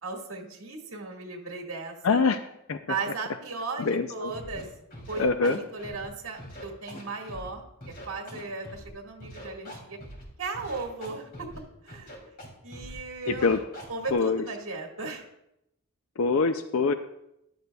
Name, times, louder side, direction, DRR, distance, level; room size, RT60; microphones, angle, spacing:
voice 1, 0.0-2.2 2.9-4.7 5.1-7.6 8.1-10.0 10.4-11.5 11.8-12.2 12.6-13.5 13.9-15.3, right 4 dB, 60° right, 0 dB, 1.9 m, -36 dB
voice 2, 2.0-2.4 2.7-2.8 3.9-4.3 5.2-5.6 13.3-13.6 14.1-14.4 16.2-16.9, left 4 dB, 65° left, 9 dB, 0.5 m, -24 dB
Scratching (performance technique), 4.3-4.6 4.9-6.1 6.4-7.5 7.8-8.9 9.2-10.2 10.5-11.6 11.9-12.5 12.7-13.0 13.3-14.1, equal, 45° left, 2.9 m, -43 dB
14.5 x 11.5 x 2.3 m, 0.83 s
head